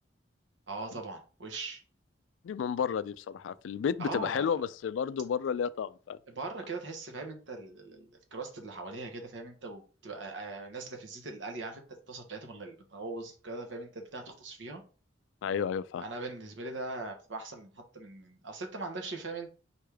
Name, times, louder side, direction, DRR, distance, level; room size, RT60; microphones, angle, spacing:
voice 1, 0.7-1.8 4.0-4.6 6.3-14.8 16.0-19.5, right 3 dB, 75° right, 1.0 m, -40 dB
voice 2, 2.4-6.2 15.4-16.0, left 7 dB, 85° left, 0.3 m, -32 dB
4.3 x 3.3 x 3.4 m
head